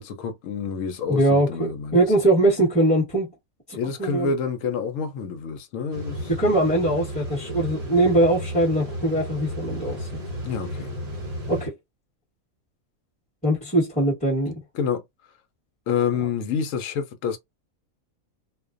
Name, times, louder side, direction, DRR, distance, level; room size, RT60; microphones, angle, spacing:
voice 1, 0.0-2.0 3.7-6.3 10.4-10.9 14.7-15.0 15.9-17.4, left 6 dB, 75° left, 0.9 m, -28 dB
voice 2, 1.1-3.3 3.7-4.3 6.3-10.1 11.5-11.7 13.4-14.6, right 1 dB, 5° left, 1.0 m, -21 dB
sound 1, 5.9-11.7, equal, 40° right, 0.6 m, -33 dB
2.4 x 2.1 x 2.4 m
omnidirectional pair, 1.4 m